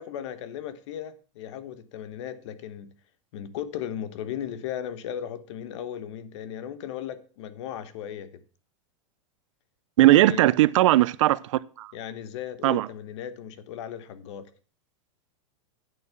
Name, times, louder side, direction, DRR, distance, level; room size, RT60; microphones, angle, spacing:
voice 1, 0.0-2.9 3.3-8.4 10.1-10.4 11.9-14.5, left 10 dB, 60° left, 1.3 m, -36 dB
voice 2, 10.0-11.9 12.6-12.9, right 16 dB, 65° right, 0.6 m, -19 dB
8.9 x 7.2 x 5.8 m
supercardioid pair, 165°, 17 cm